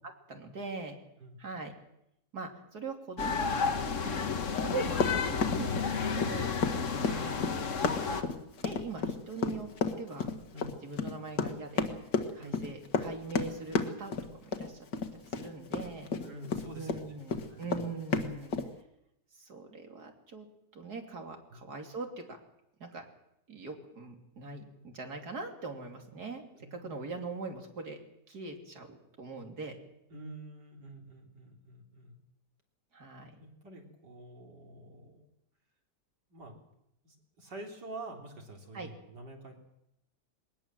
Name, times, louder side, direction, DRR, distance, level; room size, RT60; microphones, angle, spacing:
voice 1, 0.3-1.0 1.4-1.7 2.3-3.8 4.0-4.3 4.6-6.5 7.0-7.4 8.0-8.3 8.6-9.7 10.0-10.3 10.8-11.9 12.3-14.1 14.4-14.9 15.2-16.1 16.7-18.6 19.3-20.5 20.7-22.2 22.8-23.1 23.5-26.4 26.7-28.0 28.3-29.8 32.9-33.4 38.7-38.9, right 3 dB, 65° right, 3 dB, 3.5 m, -41 dB
sound 1, 3.2-8.2, left 5 dB, 50° left, 1.6 m, -32 dB
Run, 4.6-17.0 17.3-18.7, left 4 dB, 85° left, 2.2 m, -32 dB
voice 2, 16.2-17.2 17.5-17.8 21.5-21.6 26.5-26.9 30.1-32.2 33.4-35.3 36.3-36.5 37.0-39.5, right 1 dB, 85° right, 2 dB, 4.2 m, -47 dB
21.5 x 19.0 x 7.6 m, 0.80 s
omnidirectional pair, 1.8 m